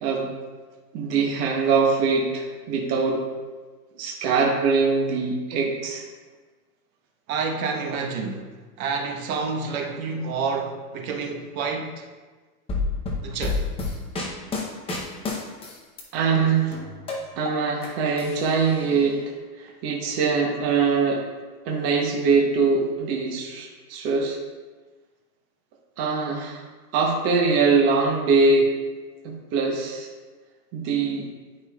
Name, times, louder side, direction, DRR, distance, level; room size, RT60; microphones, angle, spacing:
voice 1, 0.9-3.2 4.0-6.0 16.1-16.8 17.4-19.2 19.6-21.2 21.6-24.4 26.0-26.6 26.9-28.7 29.2-30.1 30.7-31.3, right 4 dB, 30° right, 0.9 m, -22 dB
voice 2, 7.3-8.5 8.8-12.1 13.2-13.7, right 4 dB, 55° right, 1.2 m, -29 dB
sound 1, 12.7-16.0 16.4-17.9 18.2-19.1, left 3 dB, 10° left, 0.7 m, -29 dB
10.0 x 5.4 x 2.3 m
supercardioid pair, 145°, 48 cm